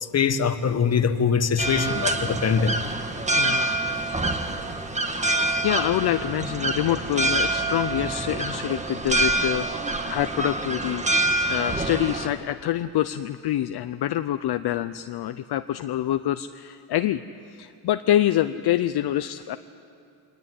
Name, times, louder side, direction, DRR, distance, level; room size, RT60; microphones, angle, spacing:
voice 1, 0.0-2.8, left 6 dB, 35° left, 10 dB, 1.4 m, -23 dB
sound 1, 1.6-12.3, right 2 dB, 15° right, 1.7 m, -26 dB
voice 2, 3.4-3.7 5.3-17.2 17.5-19.6, left 12 dB, 60° left, 11 dB, 0.7 m, -26 dB
23.5 x 20.0 x 9.6 m, 2.5 s
cardioid pair, 120°, 45 cm